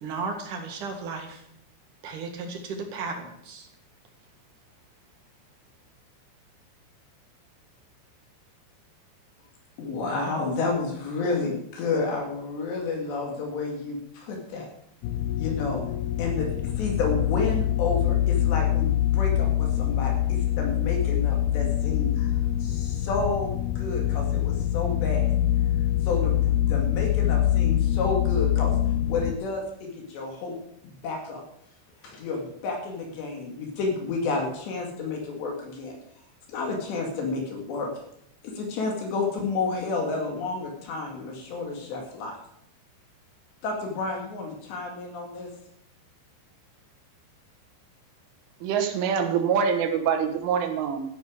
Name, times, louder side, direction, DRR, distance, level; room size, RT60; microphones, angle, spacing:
voice 1, 0.0-1.4 2.0-3.7, right 4 dB, 55° right, 3 dB, 2.8 m, -34 dB
voice 2, 9.8-14.7 15.4-15.8 16.2-16.5 16.8-22.3 22.6-25.3 26.0-28.8 29.1-30.6 30.8-31.4 32.0-35.9 36.5-37.9 38.4-42.3 43.6-45.5, left 3 dB, 70° left, 1 dB, 4.2 m, -30 dB
sound 1, 15.0-29.3, left 12 dB, 90° left, 2.3 m, -24 dB
voice 3, 48.6-51.0, right 7 dB, 90° right, 5 dB, 4.0 m, -25 dB
13.5 x 11.0 x 5.0 m, 0.73 s
omnidirectional pair, 5.4 m